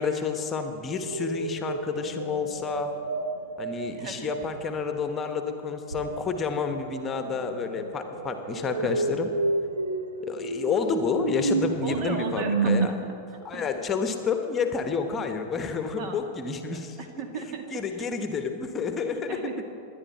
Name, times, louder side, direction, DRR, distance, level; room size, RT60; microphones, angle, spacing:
voice 1, 0.0-2.9 3.6-9.3 10.2-12.9 13.4-17.0 17.5-19.5, left 5 dB, 20° left, 7 dB, 1.4 m, -30 dB
sound 1, 1.1-4.7 5.9-12.9, right 3 dB, 75° right, 1.2 m, -31 dB
voice 2, 3.9-4.3 8.6-8.9 11.8-13.1 13.5-13.8 16.0-16.2 16.7-18.0 19.3-19.7, right 5 dB, 40° right, 4 dB, 2.1 m, -36 dB
27.5 x 11.0 x 4.3 m, 2.7 s
figure-of-eight pair, 90°, 0 cm